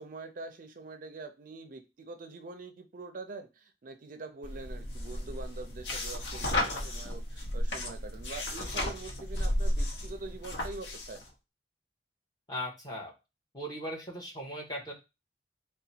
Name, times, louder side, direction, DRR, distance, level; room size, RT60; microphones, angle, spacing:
voice 1, 0.0-11.2, right 3 dB, 50° right, 8 dB, 0.4 m, -44 dB
sound 1, 4.4-11.2, left 1 dB, 85° left, 0.9 m, -33 dB
voice 2, 12.5-13.1 13.5-14.9, equal, 20° left, -2 dB, 1.1 m, -38 dB
3.8 x 2.2 x 4.2 m, 0.26 s
head